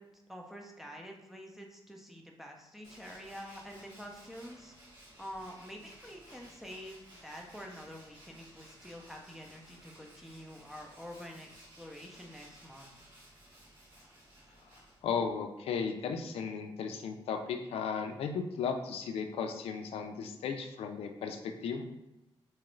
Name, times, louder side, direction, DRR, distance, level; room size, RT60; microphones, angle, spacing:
voice 1, 0.0-4.7 5.2-12.9, equal, 5° right, 0 dB, 0.4 m, -47 dB
Tools, 2.8-15.3, right 1 dB, 55° right, 1.4 m, -57 dB
voice 2, 15.0-21.8, left 6 dB, 80° left, 5 dB, 0.4 m, -35 dB
2.9 x 2.4 x 3.1 m, 0.96 s
wide cardioid pair, 135°, 10 cm